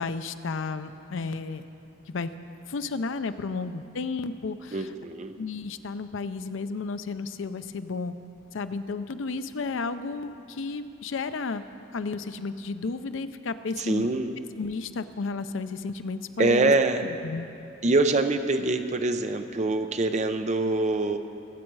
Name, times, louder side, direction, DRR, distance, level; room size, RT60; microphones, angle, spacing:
voice 1, 0.0-1.6 2.1-2.3 2.7-4.9 5.4-8.1 8.5-11.6 11.9-14.1 14.6-16.7 17.0-17.5, left 4 dB, 75° left, 11 dB, 0.5 m, -32 dB
voice 2, 4.7-5.3 13.8-14.3 16.4-17.0 17.8-21.2, right 2 dB, 35° right, 8 dB, 0.6 m, -24 dB
21.0 x 7.4 x 4.7 m, 2.8 s
head